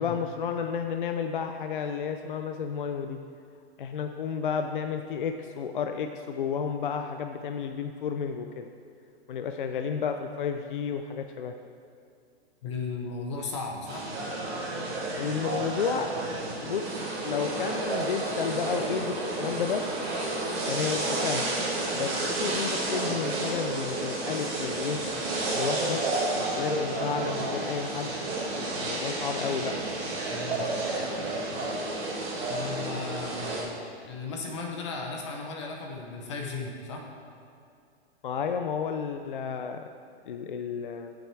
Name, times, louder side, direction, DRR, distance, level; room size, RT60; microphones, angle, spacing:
voice 1, 0.0-3.2 3.8-8.7 9.3-11.5 15.1-16.1 16.6-19.9 20.1-20.3 20.6-21.5 21.9-25.0 25.5-26.0 26.4-28.2 28.8-29.8 38.2-39.9 40.3-41.1, left 7 dB, 50° left, 6 dB, 0.4 m, -32 dB
voice 2, 12.6-14.0 30.3-30.7 32.5-37.0, left 4 dB, 25° left, 1 dB, 0.8 m, -36 dB
sound 1, 13.9-33.6, right 2 dB, 25° right, 1.8 m, -31 dB
8.5 x 7.7 x 4.7 m, 2.4 s
hypercardioid pair, 175°, 34 cm